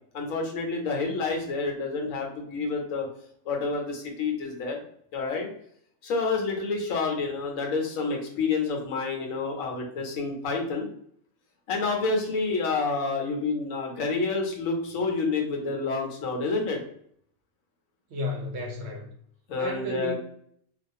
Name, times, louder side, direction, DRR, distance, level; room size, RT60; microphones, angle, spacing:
voice 1, 0.1-3.1 3.4-4.8 5.1-5.5 6.0-10.9 11.7-16.8 19.5-20.1, left 4 dB, 75° left, 1 dB, 1.0 m, -28 dB
voice 2, 18.1-19.1 19.6-20.1, left 2 dB, 60° right, 1 dB, 0.8 m, -32 dB
2.3 x 2.3 x 2.6 m, 0.66 s
omnidirectional pair, 1.4 m